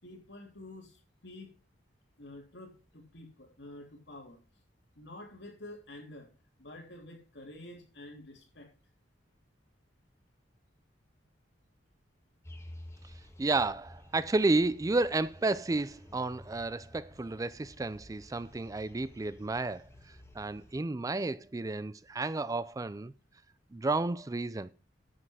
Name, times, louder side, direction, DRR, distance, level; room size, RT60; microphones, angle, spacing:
voice 1, 0.0-1.5 2.2-4.4 4.9-6.3 6.6-8.7, left 1 dB, 70° left, 3.4 m, -49 dB
sound 1, 12.4-20.8, left 1 dB, 15° left, 1.7 m, -52 dB
voice 2, 13.4-19.8 20.3-23.1 23.7-24.7, right 2 dB, 20° right, 0.4 m, -31 dB
10.0 x 7.6 x 4.8 m
head